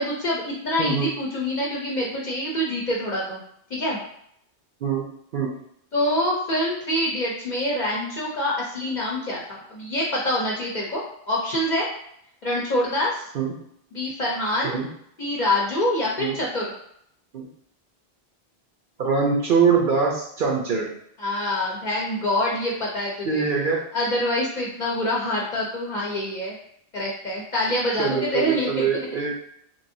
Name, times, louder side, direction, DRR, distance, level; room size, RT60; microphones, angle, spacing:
voice 1, 0.0-3.4 3.7-4.0 5.9-11.9 12.4-13.3 13.9-14.8 15.2-16.6 21.2-23.4 23.9-26.5 26.9-29.1, left 1 dB, 50° left, -4 dB, 0.7 m, -25 dB
voice 2, 0.8-1.1 4.8-5.1 5.3-5.5 13.3-13.5 14.6-14.9 16.2-16.4 17.3-17.5 19.0-20.9 23.2-23.8 28.0-29.4, right 5 dB, 60° right, -1 dB, 0.7 m, -23 dB
3.1 x 2.6 x 2.6 m, 0.71 s
omnidirectional pair, 1.1 m